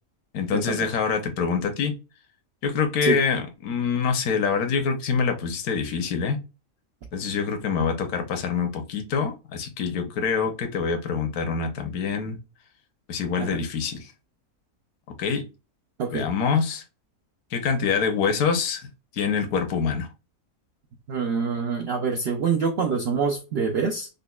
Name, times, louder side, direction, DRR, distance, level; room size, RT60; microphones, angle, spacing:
voice 1, 0.3-1.9 2.6-6.4 7.1-12.4 13.1-14.1 15.2-15.4 16.1-16.8 17.5-18.9 19.1-20.1, left 6 dB, 70° left, 1.2 m, -25 dB
voice 2, 21.1-24.1, right 5 dB, 80° right, 0.5 m, -25 dB
5.2 x 2.1 x 2.2 m
omnidirectional pair, 1.6 m